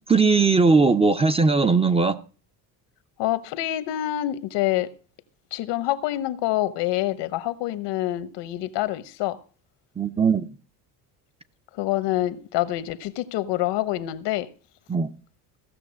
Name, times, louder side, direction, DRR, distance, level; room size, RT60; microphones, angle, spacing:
voice 1, 0.1-2.2 10.0-10.5 14.9-15.1, right 4 dB, 15° right, 0.5 m, -19 dB
voice 2, 3.2-4.9 5.5-9.4 11.7-14.5, left 14 dB, 80° left, 1.1 m, -26 dB
16.0 x 6.5 x 6.3 m
cardioid pair, 130°, 42 cm